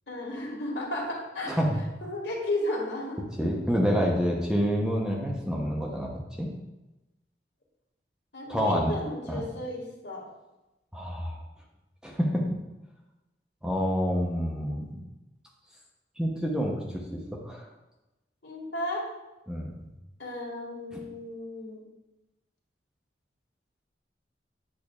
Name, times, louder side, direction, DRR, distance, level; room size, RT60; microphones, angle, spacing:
voice 1, 0.1-1.5 2.0-3.2 8.3-10.3 18.4-19.0 20.2-21.8, left 1 dB, 75° left, -2 dB, 1.8 m, -34 dB
voice 2, 1.4-1.8 3.4-6.1 6.4-6.5 8.5-8.9 9.3-9.4 10.9-11.4 12.0-12.5 13.6-14.9 16.2-17.7 19.5-19.7, equal, 5° right, -1 dB, 0.7 m, -27 dB
8.7 x 6.6 x 2.4 m, 1.0 s
head